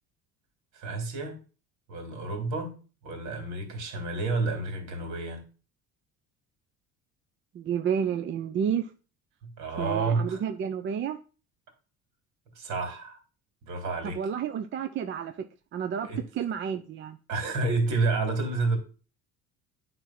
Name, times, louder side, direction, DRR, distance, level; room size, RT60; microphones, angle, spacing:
voice 1, 0.7-1.4 1.9-5.4 9.4-10.4 12.5-13.2 13.6-14.2 16.0-16.2 17.3-18.8, right 3 dB, 70° right, 3.3 m, -30 dB
voice 2, 7.5-8.9 9.8-11.2 14.0-15.5 15.7-17.2, right 8 dB, 40° right, 0.6 m, -30 dB
9.8 x 4.0 x 5.9 m
cardioid pair, 140°, 30 cm